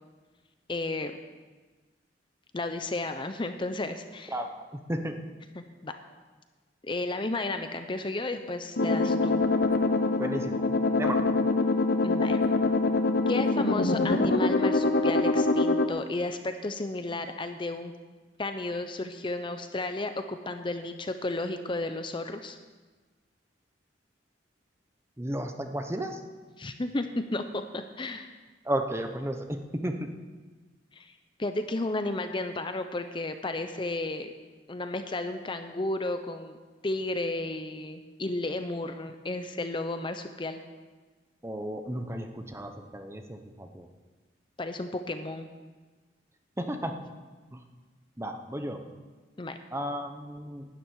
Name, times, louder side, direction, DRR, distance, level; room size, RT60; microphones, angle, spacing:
voice 1, 0.7-1.2 2.5-4.4 5.5-6.0 6.8-9.4 12.0-12.4 13.3-17.9 18.4-22.6 26.6-27.1 27.3-28.3 30.9-34.3 34.7-36.6 36.8-40.6 44.6-45.5 49.4-49.6, left 2 dB, 25° left, 8 dB, 0.6 m, -33 dB
voice 2, 4.3-5.2 10.2-10.6 10.9-11.3 25.2-26.2 28.6-30.1 41.4-43.9 46.6-47.0 47.5-47.6 48.2-48.8 49.7-50.7, right 1 dB, 15° right, 6 dB, 0.9 m, -33 dB
sound 1, 8.8-15.9, left 2 dB, 55° left, 0.8 m, -24 dB
12.0 x 7.3 x 9.5 m, 1.3 s
head